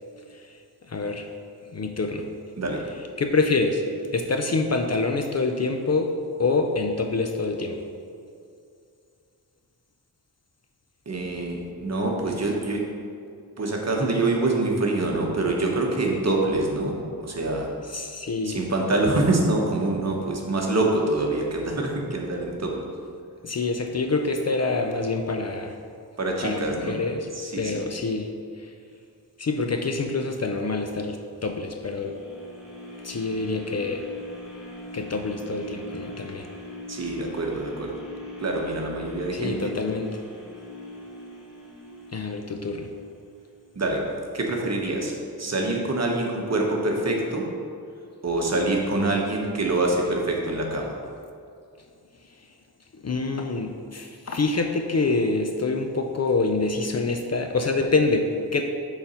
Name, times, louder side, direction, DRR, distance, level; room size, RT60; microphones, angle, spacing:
voice 1, 0.9-1.3 1.7-2.3 3.2-3.8 4.1-7.8 17.9-18.6 23.4-25.8 26.4-27.3 27.6-28.7 29.4-32.2 33.0-34.1 34.9-36.5 39.3-40.2 42.1-42.9 52.9-58.7, left 3 dB, 40° left, 4 dB, 0.5 m, -26 dB
voice 2, 11.1-12.9 13.6-16.9 17.2-17.7 18.4-22.8 26.2-26.9 27.3-27.8 36.9-38.0 38.4-39.6 43.7-44.1 44.3-47.4 48.2-51.0, right 2 dB, 40° right, 0 dB, 1.1 m, -25 dB
sound 1, 31.7-43.8 44.3-44.4, equal, ahead, 1.2 m, -42 dB
6.9 x 4.0 x 5.6 m, 2.4 s
wide cardioid pair, 115°, 40 cm